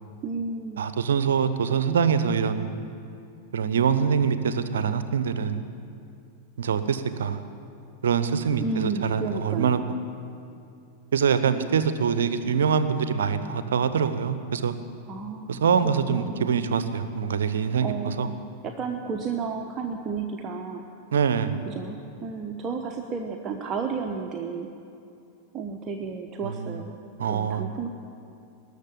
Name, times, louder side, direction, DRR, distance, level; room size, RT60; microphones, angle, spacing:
voice 1, 0.2-0.8 8.6-9.9 15.1-16.7 17.8-18.3 18.6-20.8 21.6-24.7 25.5-26.9 27.3-27.9, right 5 dB, 30° right, 3 dB, 0.9 m, -32 dB
voice 2, 0.8-2.7 3.5-5.6 6.6-7.4 8.0-9.8 11.1-14.7 15.5-18.3 21.1-21.7 26.4-26.8 27.2-27.7, right 6 dB, 65° right, 12 dB, 0.8 m, -24 dB
20.0 x 6.7 x 10.0 m, 2.5 s
figure-of-eight pair, 90°, 0 cm